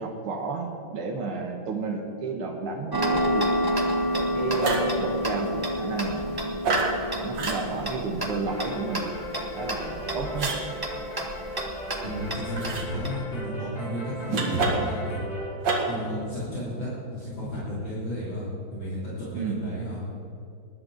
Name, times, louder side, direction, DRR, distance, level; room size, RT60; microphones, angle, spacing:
voice 1, 0.0-3.5 4.1-6.3 7.2-9.1 9.5-10.5 19.3-19.6, right 4 dB, 80° right, 2 dB, 2.1 m, -31 dB
Tick-tock, 2.9-13.1, equal, 15° right, 0.7 m, -29 dB
sound 1, 4.6-5.0 6.6-7.0 7.3-7.6 10.4-10.6 12.6-12.9 14.3-15.0 15.6-16.0, right 3 dB, 60° right, 2.2 m, -26 dB
sound 2, 8.5-15.5, equal, 30° left, 4.6 m, -37 dB
voice 2, 12.0-15.2 15.9-18.5 18.7-20.0, equal, 65° left, -9 dB, 4.0 m, -33 dB
20.0 x 11.0 x 3.9 m, 2.5 s
omnidirectional pair, 2.4 m